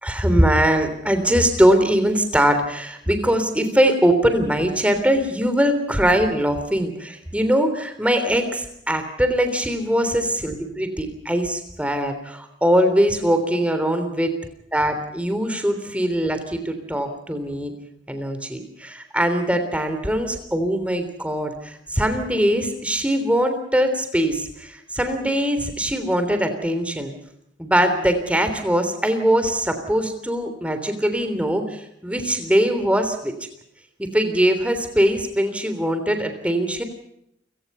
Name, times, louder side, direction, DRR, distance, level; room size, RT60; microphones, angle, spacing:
voice 1, 0.0-14.3 14.7-17.7 18.1-27.1 27.6-33.3 34.0-36.8, equal, 5° right, 7 dB, 3.4 m, -21 dB
29.0 x 18.0 x 5.6 m, 0.75 s
head